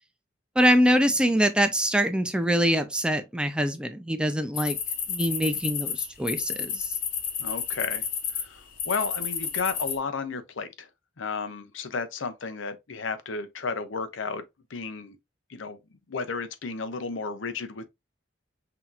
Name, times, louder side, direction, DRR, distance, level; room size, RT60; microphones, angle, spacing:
voice 1, 0.6-4.8 5.1-6.9, equal, 5° right, 0.4 m, -24 dB
sound 1, 4.6-8.4 8.8-10.0, left 7 dB, 50° left, 1.1 m, -31 dB
voice 2, 7.4-8.0 8.3-10.9 11.2-14.4 14.7-15.2 15.5-15.8 16.1-17.9, left 4 dB, 80° left, 0.7 m, -33 dB
5.9 x 2.9 x 2.5 m
head